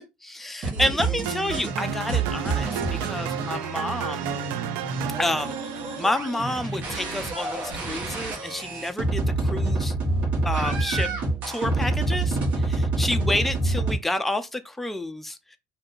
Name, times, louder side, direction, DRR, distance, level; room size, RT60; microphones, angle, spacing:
voice 1, 0.2-2.7 3.0-4.3 5.2-5.6 6.0-9.9 10.4-11.1 11.5-12.4 12.7-15.4, left 1 dB, 5° left, 0.5 m, -29 dB
sound 1, 0.6-3.6 4.0-14.0, right 2 dB, 45° right, 1.3 m, -27 dB
sound 2, 1.3-7.4, right 10 dB, 70° right, 0.5 m, -33 dB
2.7 x 2.6 x 3.8 m
supercardioid pair, 115°, 3 cm